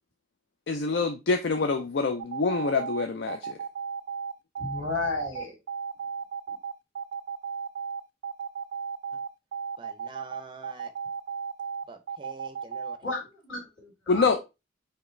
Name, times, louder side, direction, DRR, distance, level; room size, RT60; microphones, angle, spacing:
voice 1, 0.7-3.6 14.1-14.4, left 4 dB, 55° left, 0.4 m, -26 dB
sound 1, 2.2-13.0, right 6 dB, 90° right, 0.4 m, -34 dB
voice 2, 4.6-5.5 13.0-14.4, left 3 dB, 75° left, 2.7 m, -33 dB
voice 3, 9.8-10.9 11.9-13.0, right 3 dB, 25° right, 0.5 m, -45 dB
4.9 x 3.0 x 3.2 m
head